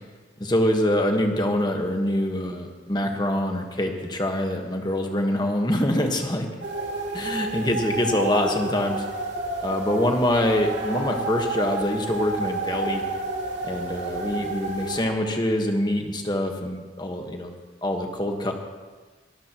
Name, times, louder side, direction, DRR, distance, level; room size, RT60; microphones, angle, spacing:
voice 1, 0.4-6.5 7.1-9.0 9.6-13.1 13.6-17.5 17.8-18.5, left 1 dB, 25° left, 3 dB, 1.4 m, -25 dB
sound 1, 6.6-15.1, right 2 dB, 75° right, 2.9 m, -30 dB
23.0 x 13.0 x 3.0 m, 1.3 s
head